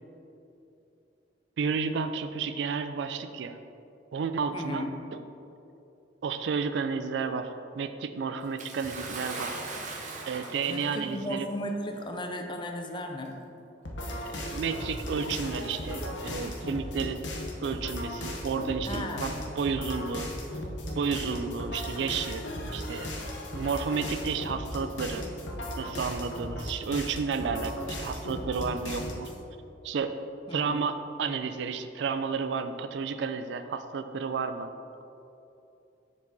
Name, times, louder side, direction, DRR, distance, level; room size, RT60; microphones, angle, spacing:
voice 1, 1.6-3.6 4.1-4.9 6.2-9.6 10.2-11.5 14.2-17.2 17.6-20.3 20.9-22.4 22.7-23.1 23.5-25.2 25.8-29.3 29.8-30.2 30.5-34.7, right 5 dB, 70° right, 10 dB, 0.3 m, -31 dB
voice 2, 4.5-4.9 10.7-13.3 18.8-19.3 19.9-20.0 30.5-30.8 31.2-31.4, left 1 dB, 25° left, 4 dB, 0.5 m, -35 dB
Bathtub (filling or washing) / Splash splatter, 8.6-11.2 12.1-12.2 13.2-13.3, right 3 dB, 45° right, 0.8 m, -39 dB
sound 1, 13.8-29.4, left 1 dB, 85° left, 0.9 m, -36 dB
7.0 x 4.7 x 4.0 m, 2.9 s
head